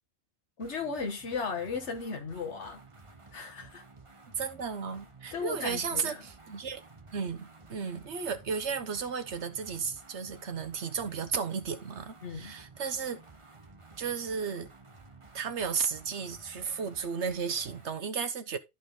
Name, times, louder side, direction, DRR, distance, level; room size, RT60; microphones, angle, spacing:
voice 1, 0.6-2.8 3.3-3.8 5.3-6.2 12.2-12.5, left 5 dB, 85° left, 1.6 m, -36 dB
sound 1, 0.6-18.0, right 3 dB, 30° right, 1.3 m, -54 dB
voice 2, 4.4-6.8 7.1-13.2 14.0-14.7 15.3-18.6, right 6 dB, 85° right, 1.4 m, -34 dB
13.5 x 4.7 x 4.0 m
omnidirectional pair, 1.1 m